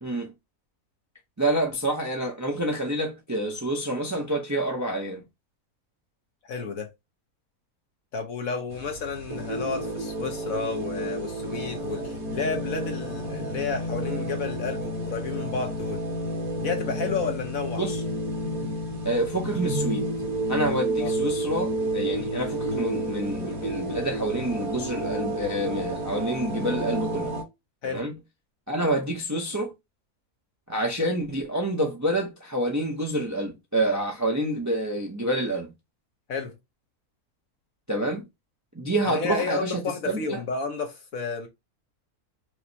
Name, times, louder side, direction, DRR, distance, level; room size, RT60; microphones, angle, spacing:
voice 1, 0.0-0.3 1.4-5.2 17.8-18.0 19.0-20.1 20.5-27.4 27.9-28.1 28.7-29.7 30.7-35.7 37.9-38.3 38.7-40.4, right 1 dB, 15° right, 0.6 m, -28 dB
voice 2, 6.5-6.9 8.1-16.0 16.6-17.8 21.0-21.1 27.8-28.1 36.3-36.5 39.0-41.5, left 4 dB, 65° left, 1.5 m, -31 dB
sound 1, 8.7-27.4, right 1 dB, 75° right, 2.0 m, -30 dB
4.7 x 2.1 x 2.8 m
omnidirectional pair, 1.6 m